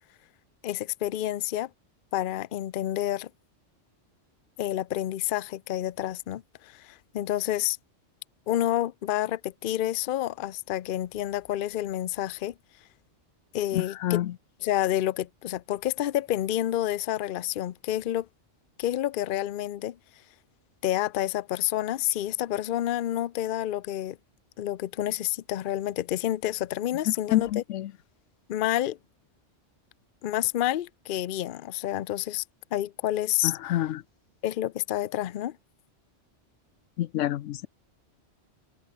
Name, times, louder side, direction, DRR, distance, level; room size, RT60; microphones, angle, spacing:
voice 1, 0.6-1.7 2.1-3.3 4.6-7.8 8.5-12.5 13.5-14.2 14.6-18.3 18.8-20.0 20.8-24.2 24.6-27.6 28.5-29.0 30.2-32.4 32.7-33.5 34.4-35.6, left 13 dB, 55° left, 0.6 m, -29 dB
voice 2, 13.7-14.4 27.1-27.9 33.4-34.0 37.0-37.7, left 13 dB, 85° left, 1.0 m, -28 dB
omnidirectional pair, 1.2 m